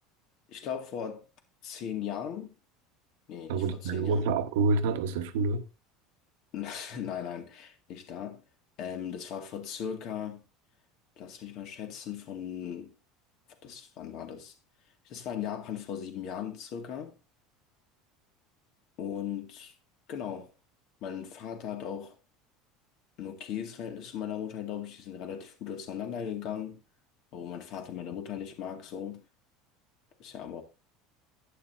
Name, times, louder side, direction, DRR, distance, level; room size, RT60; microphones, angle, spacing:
voice 1, 0.5-1.2 1.6-2.5 3.3-4.3 6.5-8.4 8.8-10.4 11.2-12.9 13.6-14.5 15.0-17.1 19.0-19.7 20.1-20.5 21.0-22.2 23.2-26.8 27.3-29.2 30.2-30.6, left 8 dB, 50° left, 2.1 m, -38 dB
voice 2, 3.5-5.6, right 4 dB, 90° right, 1.1 m, -27 dB
11.5 x 9.4 x 2.7 m
cardioid pair, 150°, 0 cm